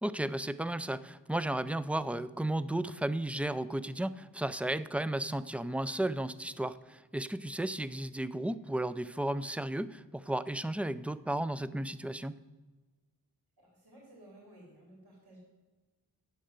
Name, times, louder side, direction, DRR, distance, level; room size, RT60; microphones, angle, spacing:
voice 1, 0.0-12.4, right 1 dB, 5° right, 15 dB, 0.4 m, -34 dB
voice 2, 13.6-15.4, right 1 dB, 85° right, -4 dB, 3.7 m, -56 dB
10.0 x 7.7 x 8.0 m, 1.3 s
wide cardioid pair, 70°, 38 cm